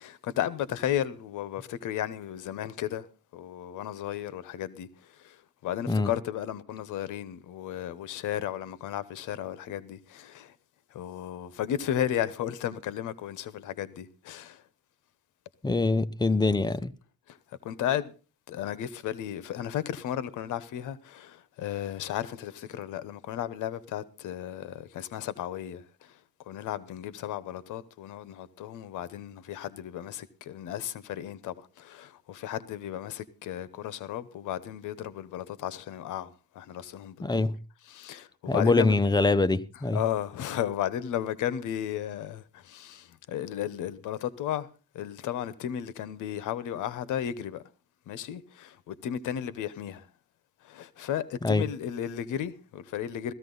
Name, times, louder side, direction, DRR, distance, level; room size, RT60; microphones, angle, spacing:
voice 1, 0.0-3.1 3.3-4.9 5.2-5.4 5.6-10.5 10.9-14.6 17.3-17.4 17.6-18.1 18.5-26.1 26.5-37.5 37.9-38.9 39.9-44.7 44.9-47.6 48.1-50.1 50.6-53.3, left 10 dB, 80° left, 1.0 m, -34 dB
voice 2, 15.6-16.9 37.2-37.6 38.5-40.0 51.4-51.7, left 3 dB, 15° left, 0.7 m, -24 dB
16.0 x 14.0 x 3.9 m
cardioid pair, 90°, 30 cm